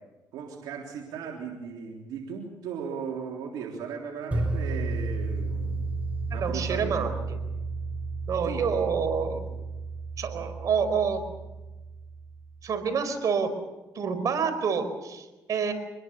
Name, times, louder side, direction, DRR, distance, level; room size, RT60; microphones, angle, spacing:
voice 1, 0.3-6.0 6.3-7.2 8.4-8.6, right 6 dB, 85° right, 0 dB, 3.5 m, -37 dB
sound 1, 4.3-12.4, right 3 dB, 20° right, 6.3 m, -33 dB
voice 2, 6.3-7.4 8.3-9.4 10.2-11.2 12.6-13.5 13.9-15.7, right 6 dB, 60° right, 8 dB, 4.6 m, -28 dB
25.5 x 21.0 x 7.1 m, 1.1 s
cardioid pair, 75°, 7 cm